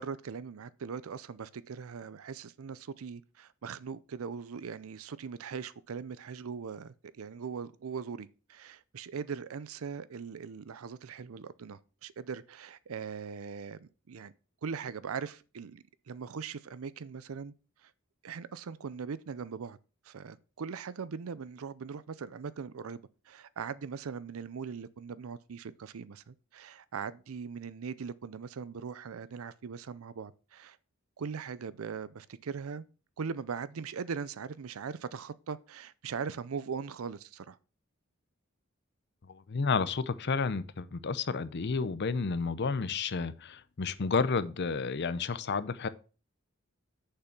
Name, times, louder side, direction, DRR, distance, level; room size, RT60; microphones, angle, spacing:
voice 1, 0.0-14.3 14.6-17.5 17.8-17.9 18.2-19.8 20.0-30.8 31.2-32.9 33.2-37.6, right 6 dB, 80° right, 0.5 m, -40 dB
voice 2, 39.3-45.9, left 4 dB, 55° left, 0.6 m, -31 dB
6.7 x 5.7 x 5.9 m
head